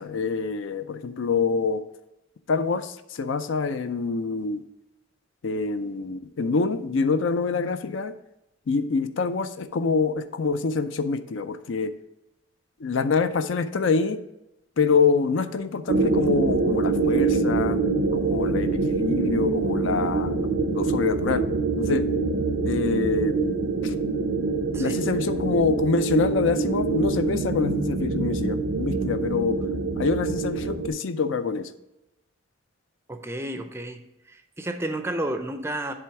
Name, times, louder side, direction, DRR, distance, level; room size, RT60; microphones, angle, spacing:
voice 1, 0.0-1.8 2.5-2.9 3.2-4.6 5.4-8.1 8.7-11.9 12.8-14.2 14.8-17.8 18.2-21.4 21.8-22.0 22.7-23.6 24.8-29.6 30.0-31.7, left 4 dB, 70° left, 11 dB, 0.5 m, -25 dB
sound 1, 15.9-30.9, right 4 dB, 70° right, 0.6 m, -25 dB
voice 2, 33.1-34.0 34.3-35.9, right 1 dB, 10° right, 7 dB, 0.4 m, -31 dB
7.7 x 3.5 x 5.8 m, 0.89 s
head